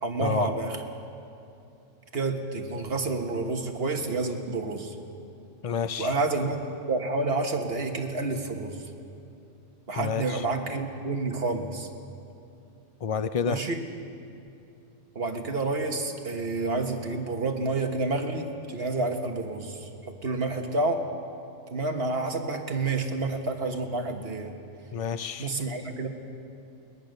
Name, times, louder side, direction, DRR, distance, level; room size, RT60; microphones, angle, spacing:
voice 1, 0.0-0.8 2.1-4.9 6.0-6.6 6.9-8.8 9.9-11.9 13.4-13.8 15.1-21.1 21.7-24.5 25.4-26.1, right 3 dB, 50° right, 4 dB, 1.6 m, -29 dB
voice 2, 5.6-6.1 10.0-10.5 13.0-13.6 24.9-25.5, left 6 dB, 50° left, 12 dB, 0.4 m, -29 dB
22.0 x 20.0 x 6.6 m, 2.7 s
omnidirectional pair, 1.3 m